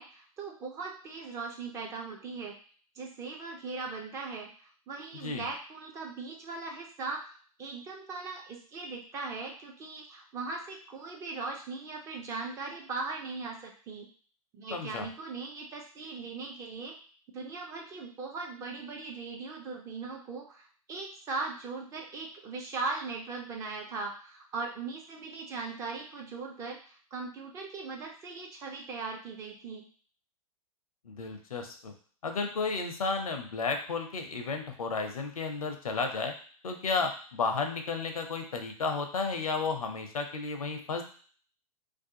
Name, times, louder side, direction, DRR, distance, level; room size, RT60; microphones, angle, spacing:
voice 1, 0.0-2.6 2.9-7.2 7.6-14.1 14.5-17.0 17.3-29.9, right 4 dB, 15° right, 1 dB, 0.3 m, -39 dB
voice 2, 5.1-5.5 14.7-15.1 31.1-31.9 32.2-36.3 36.6-41.0, left 4 dB, 70° left, 5 dB, 0.5 m, -33 dB
2.6 x 2.3 x 2.7 m, 0.44 s
figure-of-eight pair, 105°, 19 cm